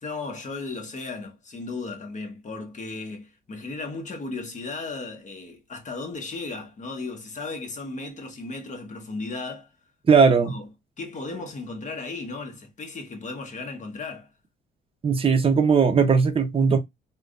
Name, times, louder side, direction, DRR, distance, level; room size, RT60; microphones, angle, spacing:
voice 1, 0.0-9.7 10.4-10.7 11.0-14.3, left 3 dB, 40° left, 1.0 m, -35 dB
voice 2, 10.1-10.5 15.0-16.8, right 5 dB, 30° right, 0.6 m, -18 dB
3.3 x 2.2 x 2.5 m
cardioid pair, 90°, 20 cm